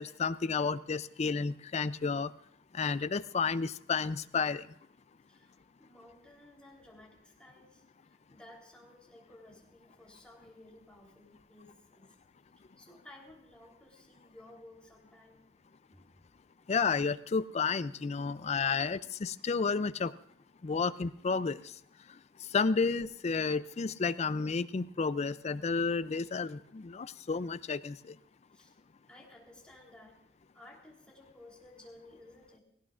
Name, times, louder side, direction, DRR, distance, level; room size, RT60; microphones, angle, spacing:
voice 1, 0.0-2.3 2.7-4.7 16.7-20.1 20.6-21.6 22.5-28.1, left 5 dB, 35° left, 15 dB, 0.4 m, -31 dB
voice 2, 5.3-12.1 12.8-15.5 15.9-16.2 28.5-28.7 29.1-30.2 30.5-32.6, left 1 dB, 5° left, -3 dB, 3.5 m, -56 dB
18.0 x 17.5 x 2.5 m, 0.73 s
head